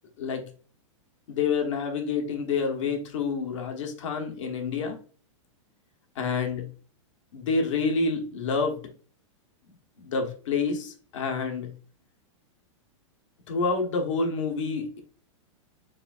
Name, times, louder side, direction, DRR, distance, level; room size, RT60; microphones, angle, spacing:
voice 1, 1.3-5.0 6.1-6.7 7.3-8.8 10.0-11.7 13.5-15.0, left 4 dB, 70° left, 4 dB, 1.1 m, -28 dB
4.7 x 3.5 x 2.4 m, 0.41 s
supercardioid pair, 150°, 16 cm